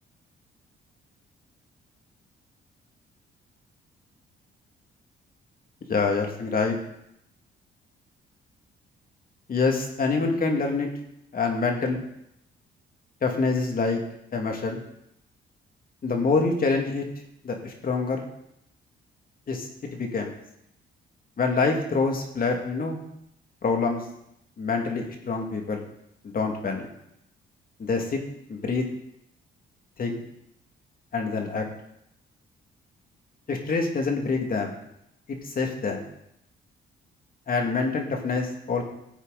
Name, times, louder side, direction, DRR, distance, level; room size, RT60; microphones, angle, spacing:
voice 1, 5.9-6.8 9.5-10.9 11.3-12.0 13.2-14.0 14.3-14.8 16.0-17.0 17.4-18.2 19.5-20.3 21.4-23.0 23.6-24.0 24.6-25.8 26.2-26.9 27.8-28.2 28.5-28.9 30.0-30.2 31.1-31.7 33.5-34.7 35.4-36.0 37.5-38.8, left 4 dB, 45° left, 2 dB, 2.5 m, -26 dB
15.0 x 8.2 x 4.2 m, 0.78 s
cardioid pair, 90°, 20 cm